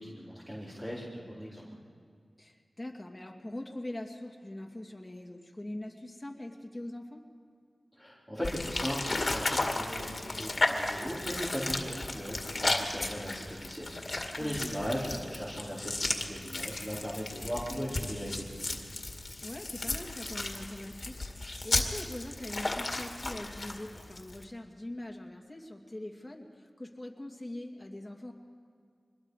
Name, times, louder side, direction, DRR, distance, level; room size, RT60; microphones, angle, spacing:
voice 1, 0.0-1.7 8.0-18.8, equal, 15° right, -8 dB, 4.6 m, -38 dB
voice 2, 2.4-7.2 14.4-14.7 19.4-28.3, left 1 dB, 20° left, 1 dB, 2.4 m, -42 dB
sound 1, 8.4-24.4, left 2 dB, 50° left, 2.2 m, -34 dB
24.5 x 21.0 x 5.0 m, 2.1 s
cardioid pair, 50°, 0 cm